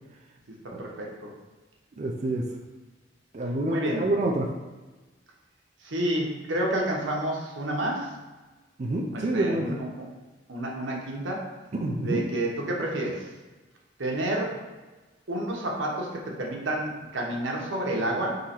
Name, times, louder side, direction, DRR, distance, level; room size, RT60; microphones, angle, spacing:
voice 1, 0.8-1.3 3.7-4.1 5.8-8.1 9.1-9.9 10.5-11.4 12.0-13.3 14.0-14.6 15.3-18.4, right 1 dB, 90° right, -1 dB, 1.0 m, -29 dB
voice 2, 2.0-2.5 3.3-4.5 8.8-9.8 11.7-12.2, right 1 dB, 40° right, 0 dB, 0.4 m, -27 dB
3.8 x 3.0 x 4.3 m, 1.2 s
head